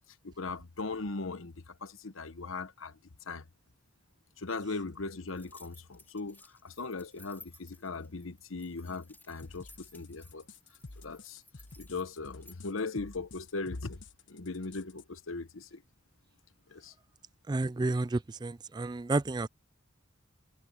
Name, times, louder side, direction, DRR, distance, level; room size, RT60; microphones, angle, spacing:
voice 1, 0.2-3.0 3.3-3.4 4.4-10.5 11.0-11.4 11.8-14.0 14.3-15.8 16.7-16.9, left 3 dB, 85° left, 1.1 m, -39 dB
sound 1, 5.3-12.6, left 1 dB, 10° left, 3.3 m, -58 dB
sound 2, 9.4-15.0, left 3 dB, 65° left, 1.2 m, -51 dB
voice 2, 17.5-19.5, right 2 dB, 20° right, 0.4 m, -31 dB
head